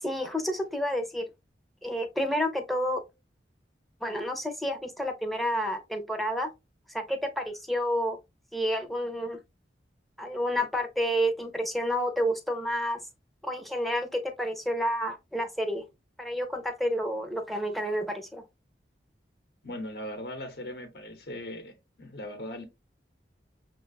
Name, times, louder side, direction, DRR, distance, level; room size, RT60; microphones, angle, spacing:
voice 1, 0.0-1.2 1.8-3.0 4.0-6.5 6.9-8.2 8.5-9.4 10.2-13.0 13.4-15.8 16.2-18.4, equal, ahead, 0.6 m, -30 dB
voice 2, 19.6-22.6, left 1 dB, 65° left, 0.9 m, -39 dB
6.5 x 2.3 x 2.3 m
head